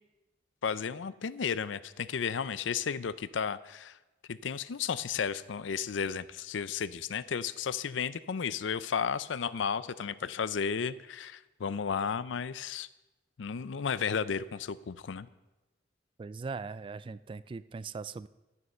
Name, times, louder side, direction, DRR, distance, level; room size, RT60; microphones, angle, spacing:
voice 1, 0.6-4.0 4.3-12.9 13.4-15.3, left 6 dB, 75° left, 16 dB, 0.5 m, -33 dB
voice 2, 16.2-18.3, right 4 dB, 25° right, 15 dB, 0.3 m, -40 dB
13.0 x 9.5 x 5.6 m, 1.1 s
head